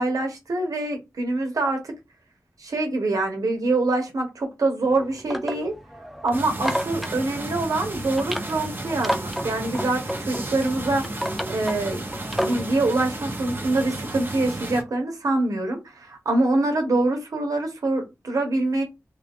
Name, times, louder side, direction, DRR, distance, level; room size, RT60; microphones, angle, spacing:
voice 1, 0.0-1.9 2.6-5.7 6.2-11.0 11.5-12.0 12.4-18.8, right 2 dB, 85° right, 3 dB, 1.0 m, -25 dB
sound 1, 4.8-12.7, equal, ahead, 0.5 m, -32 dB
sound 2, 6.3-14.8, right 2 dB, 35° right, 0.8 m, -33 dB
3.0 x 2.5 x 3.5 m, 0.22 s
cardioid pair, 50°, 6 cm